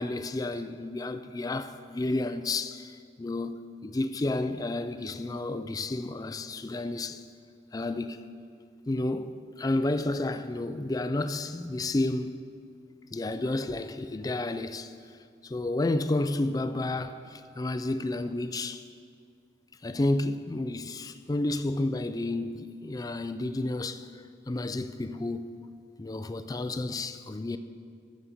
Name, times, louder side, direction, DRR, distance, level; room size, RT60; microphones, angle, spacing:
voice 1, 0.0-7.2 7.7-8.3 8.9-12.4 13.1-15.0 15.4-18.8 19.8-24.1 24.5-25.6 26.0-27.6, left 2 dB, 20° left, 0.3 m, -31 dB
11.0 x 5.3 x 7.4 m
head